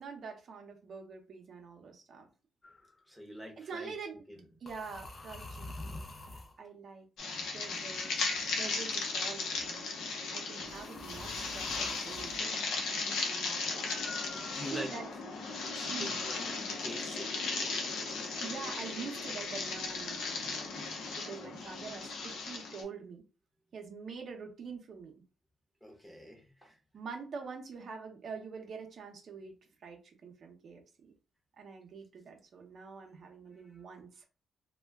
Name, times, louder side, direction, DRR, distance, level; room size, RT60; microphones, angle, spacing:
voice 1, 0.0-2.3 3.6-4.2 4.6-6.0 6.3-8.3 8.6-9.9 10.3-12.6 12.9-15.1 15.9-16.2 18.4-20.7 21.1-23.2 23.7-25.2 26.9-31.1 31.6-34.2, right 5 dB, 55° right, 0.6 m, -45 dB
sound 1, 2.6-2.9 4.7-6.6 7.9-9.1 10.6-12.4 13.8-15.0, left 2 dB, 35° left, 0.4 m, -47 dB
voice 2, 3.1-3.9 4.3-4.4 14.5-14.9 15.7-17.3 21.4-21.5 25.8-26.8, equal, 10° left, 0.8 m, -45 dB
sound 2, 7.2-22.8, left 4 dB, 85° left, 0.7 m, -36 dB
2.2 x 2.1 x 3.3 m
cardioid pair, 110°, 0 cm